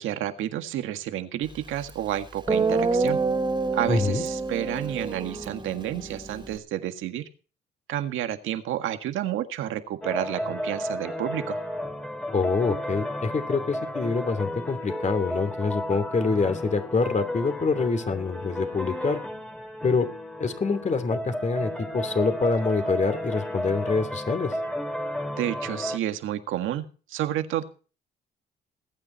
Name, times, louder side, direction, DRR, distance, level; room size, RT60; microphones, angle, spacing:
voice 1, 0.0-3.2 3.7-7.2 7.9-11.6 25.4-27.6, right 12 dB, 90° right, 8 dB, 1.7 m, -30 dB
Guitar, 1.9-2.0 2.5-6.6, right 3 dB, 25° right, 2.6 m, -27 dB
voice 2, 3.9-4.3 12.3-19.2 19.8-20.1 20.4-24.5, left 4 dB, 35° left, 10 dB, 2.8 m, -26 dB
sound 1, 10.0-26.0, equal, 5° left, 2.4 m, -33 dB
20.5 x 9.1 x 4.4 m, 0.36 s
cardioid pair, 90°, 20 cm